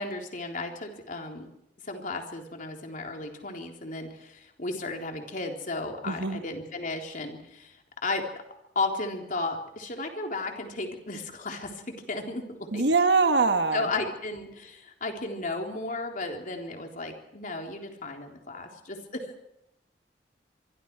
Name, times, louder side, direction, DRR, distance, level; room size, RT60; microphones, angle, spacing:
voice 1, 0.0-1.5 1.8-8.3 8.8-12.8 13.7-19.3, left 2 dB, 50° left, 3 dB, 3.8 m, -34 dB
voice 2, 6.0-6.4 12.7-13.9, right 4 dB, 70° right, 7 dB, 1.5 m, -23 dB
25.5 x 23.5 x 4.8 m, 0.80 s
head